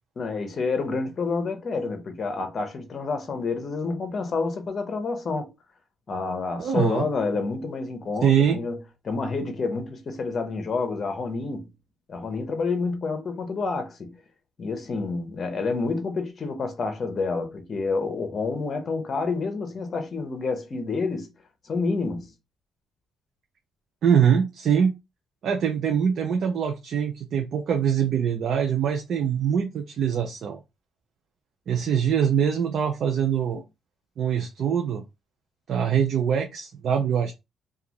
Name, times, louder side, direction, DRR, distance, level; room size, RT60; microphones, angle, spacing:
voice 1, 0.2-5.5 6.1-8.8 9.0-11.7 12.1-14.2 14.6-21.3 21.7-22.3, left 4 dB, 45° left, 0.8 m, -28 dB
voice 2, 6.6-7.1 8.2-8.6 24.0-24.9 25.4-30.6 31.7-33.6 34.2-35.0 35.7-37.3, right 8 dB, 65° right, 0.5 m, -23 dB
2.4 x 2.3 x 2.9 m
cardioid pair, 90°, 0 cm